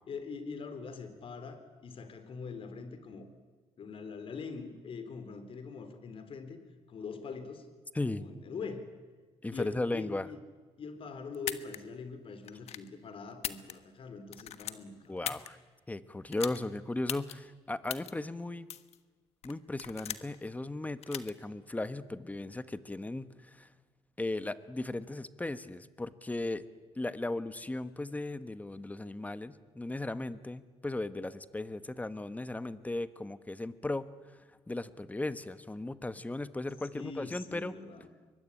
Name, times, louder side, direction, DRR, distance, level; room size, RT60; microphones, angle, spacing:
voice 1, 0.1-3.3 3.8-6.6 6.9-7.7 8.1-9.0 9.5-10.4 10.8-15.3 36.9-38.1, left 5 dB, 55° left, 10 dB, 3.8 m, -43 dB
voice 2, 7.9-8.2 9.4-10.3 15.1-15.6 15.9-18.7 19.4-23.7 24.2-26.6 26.9-37.7, left 2 dB, 15° left, 13 dB, 1.3 m, -36 dB
sound 1, 11.3-11.8 12.5-12.9 13.3-14.0 14.3-15.5 16.3-16.6 17.1-17.3 17.9-18.1 18.7-19.0 19.4-20.4 21.0-21.3, left 10 dB, 70° left, 1.3 m, -38 dB
24.5 x 21.5 x 9.9 m, 1.4 s
cardioid pair, 95°, 11 cm